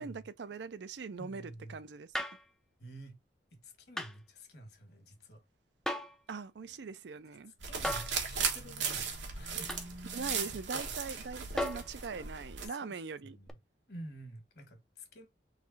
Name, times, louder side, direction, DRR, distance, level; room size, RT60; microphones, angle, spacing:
voice 1, 0.0-2.1 6.3-7.5 10.1-13.4, right 4 dB, 75° right, 0.4 m, -41 dB
voice 2, 1.1-1.8 2.8-3.2 3.5-5.4 7.6-9.8 10.7-10.9 12.6-13.0 13.2-13.6 13.9-15.3, equal, 60° left, 1.7 m, -50 dB
sound 1, 2.1-2.5 4.0-4.2 5.8-6.2 7.8-8.2 9.7-9.9 11.6-11.9 13.5-13.6, left 1 dB, 5° left, 0.4 m, -36 dB
sound 2, 7.6-12.7, right 6 dB, 90° right, 1.3 m, -37 dB
4.0 x 3.1 x 4.0 m
head